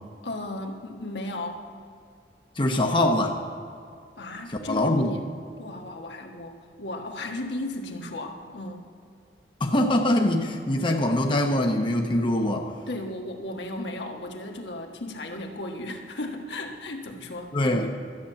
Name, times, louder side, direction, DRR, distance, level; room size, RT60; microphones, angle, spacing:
voice 1, 0.2-1.6 4.2-5.3 5.6-8.8 12.8-17.8, left 1 dB, 80° left, 2 dB, 1.5 m, -35 dB
voice 2, 2.6-3.4 4.5-5.1 9.6-12.7 17.5-17.9, left 1 dB, 30° left, 2 dB, 0.9 m, -23 dB
13.0 x 7.1 x 8.4 m, 2.3 s
head